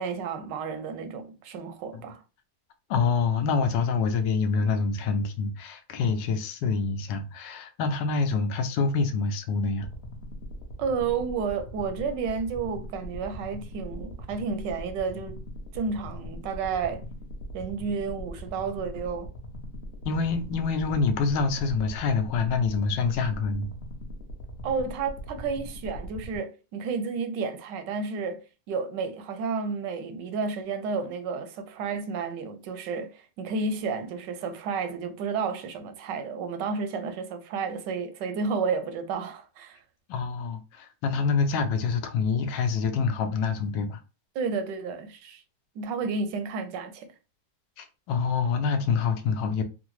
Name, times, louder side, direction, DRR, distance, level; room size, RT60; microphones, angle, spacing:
voice 1, 0.0-2.2 10.8-15.4 15.7-17.0 17.5-19.3 24.6-39.8 44.3-45.4 45.8-47.1, right 5 dB, 85° right, 1.2 m, -31 dB
voice 2, 2.9-9.9 20.0-23.7 40.1-44.0 47.8-49.6, left 5 dB, 90° left, 1.3 m, -26 dB
sound 1, 9.8-26.4, equal, 55° left, 0.7 m, -40 dB
3.7 x 2.1 x 3.0 m
omnidirectional pair, 1.9 m